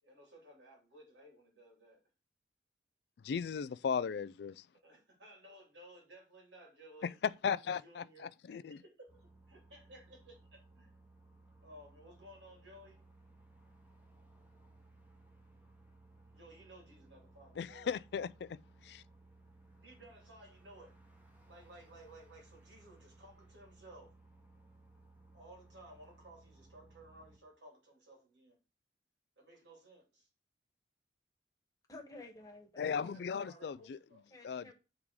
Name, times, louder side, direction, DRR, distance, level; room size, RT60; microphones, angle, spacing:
voice 1, 0.0-2.0 4.8-7.2 7.8-10.9 11.6-13.1 16.3-17.9 19.8-21.0 21.5-24.1 25.3-28.6 29.4-30.3 32.8-34.3, right 1 dB, 75° right, 2.9 m, -57 dB
voice 2, 3.2-4.7 7.0-8.8 17.6-19.0 32.8-34.0 34.4-34.7, left 6 dB, 60° left, 0.3 m, -37 dB
sound 1, 9.1-27.4, right 2 dB, 10° right, 1.2 m, -61 dB
voice 3, 31.9-33.2 34.3-34.7, left 2 dB, 20° left, 1.4 m, -52 dB
8.5 x 3.7 x 4.7 m
head